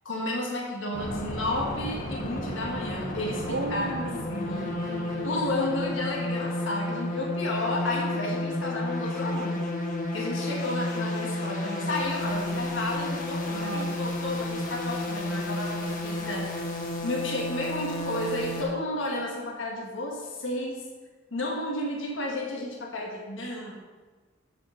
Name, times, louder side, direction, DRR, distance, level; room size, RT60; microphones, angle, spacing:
voice 1, 0.0-3.9 4.3-4.7 5.2-9.6 10.1-16.6 17.0-20.8 21.3-23.7, left 1 dB, 80° left, -1 dB, 1.5 m, -32 dB
sound 1, 0.9-18.6, left 1 dB, 45° left, 1.4 m, -32 dB
voice 2, 3.5-5.4 13.5-13.9, right 2 dB, 70° right, 5 dB, 1.0 m, -36 dB
7.5 x 5.0 x 6.4 m, 1.3 s
head